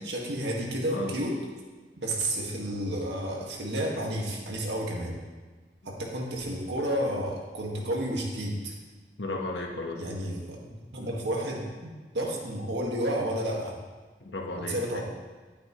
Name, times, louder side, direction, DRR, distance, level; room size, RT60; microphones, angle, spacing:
voice 1, 0.0-1.4 2.0-5.2 5.8-8.7 10.0-13.8 14.6-15.0, right 1 dB, 80° right, -1 dB, 1.9 m, -31 dB
voice 2, 9.2-10.0 14.2-15.0, left 2 dB, 85° left, 1 dB, 1.4 m, -34 dB
12.0 x 9.0 x 3.2 m, 1.3 s
head